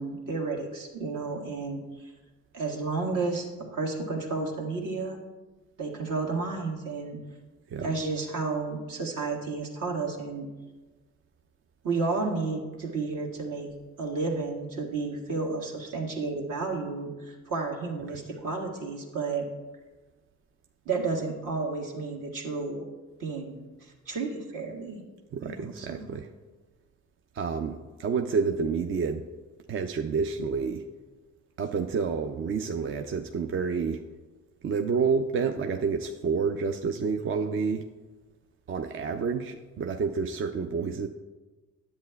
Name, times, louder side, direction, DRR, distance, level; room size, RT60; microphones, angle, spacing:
voice 1, 0.0-2.1 2.5-5.2 5.8-7.2 7.8-10.5 11.8-13.7 14.0-19.5 20.8-22.9 23.2-25.0 25.4-26.1, right 3 dB, 60° right, 0 dB, 1.6 m, -32 dB
voice 2, 25.3-26.3 27.3-29.3 29.7-30.8 31.6-34.0 34.6-37.8 38.7-41.1, right 5 dB, 35° right, 6 dB, 0.5 m, -29 dB
10.5 x 7.7 x 2.3 m, 1.2 s
hypercardioid pair, 50°, 36 cm